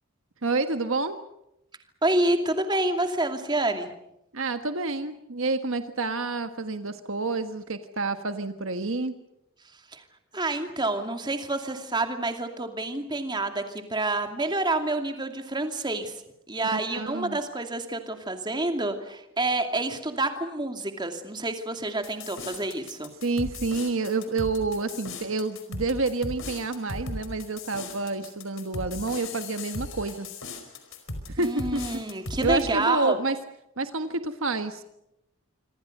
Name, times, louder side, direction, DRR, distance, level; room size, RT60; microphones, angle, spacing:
voice 1, 0.4-1.2 4.3-9.1 16.7-17.4 23.2-30.3 31.3-31.8 32.4-33.4 33.8-34.8, right 3 dB, 60° right, 8 dB, 1.4 m, -28 dB
voice 2, 2.0-3.9 9.9-10.0 10.3-16.1 16.5-23.1 31.4-33.2, right 2 dB, 20° right, 6 dB, 2.6 m, -28 dB
sound 1, 22.0-32.6, left 2 dB, 60° left, 4.8 m, -37 dB
27.0 x 25.0 x 6.7 m, 0.84 s
head